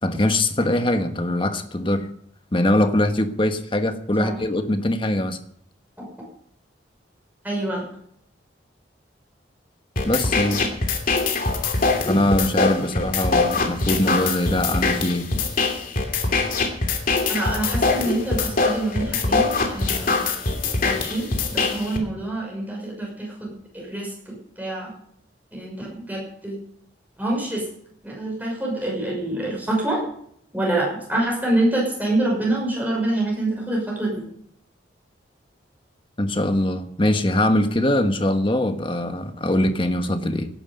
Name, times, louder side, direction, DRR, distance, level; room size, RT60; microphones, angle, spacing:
voice 1, 0.0-2.1 2.5-5.4 10.0-10.6 12.1-15.2 36.2-40.5, left 1 dB, 25° left, 8 dB, 1.3 m, -22 dB
voice 2, 7.4-7.8 17.3-20.3 20.8-24.9 25.5-26.6 27.2-27.7 28.0-30.0 30.5-34.2, right 1 dB, 10° right, -2 dB, 6.2 m, -26 dB
sound 1, 10.0-22.0, left 3 dB, 45° left, 2.8 m, -23 dB
18.0 x 11.5 x 5.4 m, 0.69 s
head